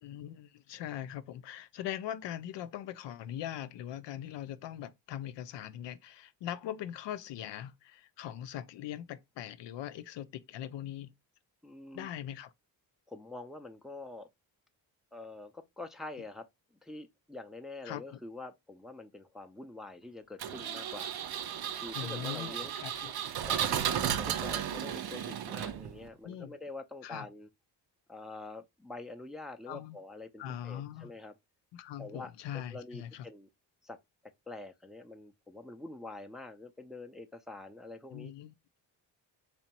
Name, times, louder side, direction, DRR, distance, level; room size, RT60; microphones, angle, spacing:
voice 1, 0.0-11.1 11.9-12.5 17.8-18.2 21.9-23.1 26.2-26.5 27.0-27.3 29.7-30.0 30.4-31.1 31.7-33.3 38.1-38.5, left 11 dB, 65° left, 0.5 m, -41 dB
voice 2, 11.6-12.1 13.1-14.3 15.1-16.5 16.8-21.1 21.8-22.7 23.4-27.5 28.1-31.3 32.0-32.3 32.7-33.5 33.8-34.0 34.5-38.3, left 2 dB, ahead, 0.5 m, -46 dB
Engine, 20.4-26.1, right 9 dB, 55° right, 0.6 m, -34 dB
3.4 x 2.9 x 2.8 m
supercardioid pair, 50°, 47 cm